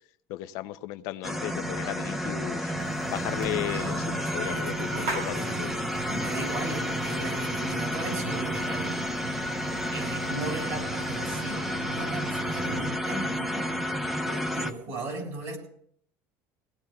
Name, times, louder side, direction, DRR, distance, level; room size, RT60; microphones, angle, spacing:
voice 1, 0.3-2.7 3.1-5.7 9.7-9.8, left 15 dB, 65° left, 11 dB, 0.5 m, -35 dB
sound 1, 1.2-14.7, equal, 5° right, 0.8 m, -31 dB
sound 2, 2.8-12.9, right 2 dB, 85° right, 3.2 m, -37 dB
voice 2, 4.2-5.7 6.2-9.0 9.9-13.7 14.2-15.6, right 2 dB, 50° right, 0 dB, 7.1 m, -37 dB
23.0 x 17.5 x 2.3 m, 0.64 s
cardioid pair, 150°, 7 cm